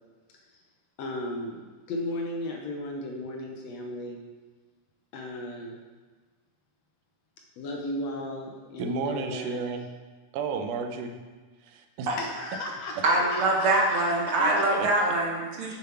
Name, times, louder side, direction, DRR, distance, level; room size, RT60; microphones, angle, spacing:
voice 1, 1.0-4.2 5.1-5.8 7.6-9.6 12.2-14.4, left 1 dB, 70° left, 1 dB, 1.7 m, -35 dB
voice 2, 8.8-9.9 10.3-11.2 11.6-12.1 14.8-14.9, right 5 dB, 80° right, 6 dB, 2.1 m, -32 dB
voice 3, 13.0-15.8, right 2 dB, 60° right, -1 dB, 1.5 m, -24 dB
7.6 x 7.0 x 4.4 m, 1.4 s
omnidirectional pair, 3.6 m